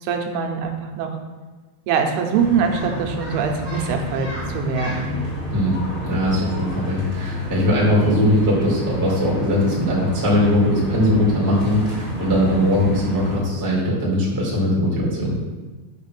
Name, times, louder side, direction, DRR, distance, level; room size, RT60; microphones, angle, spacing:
voice 1, 0.0-1.1 1.9-5.1, right 6 dB, 85° right, 3 dB, 2.8 m, -23 dB
sound 1, 2.3-13.4, left 1 dB, 20° left, 2.2 m, -29 dB
voice 2, 6.0-15.3, left 1 dB, 10° right, -5 dB, 1.0 m, -20 dB
8.5 x 4.0 x 6.0 m, 1.3 s
omnidirectional pair, 4.5 m